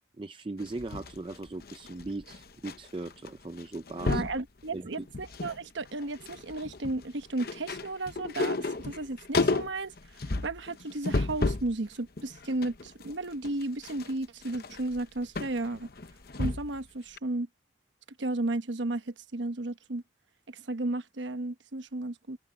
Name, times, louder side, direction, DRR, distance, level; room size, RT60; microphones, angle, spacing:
voice 1, 0.2-4.2 4.7-5.1, right 2 dB, 25° right, 0.4 m, -39 dB
sound 1, 0.6-2.8 3.0-3.3 3.6-4.4 4.9-5.6 5.9-11.7 12.2-16.8 17.2-17.3, left 3 dB, 50° left, 0.8 m, -32 dB
voice 2, 4.1-15.9 16.4-17.5 18.2-20.0 20.5-22.4, right 2 dB, 75° right, 1.1 m, -34 dB
head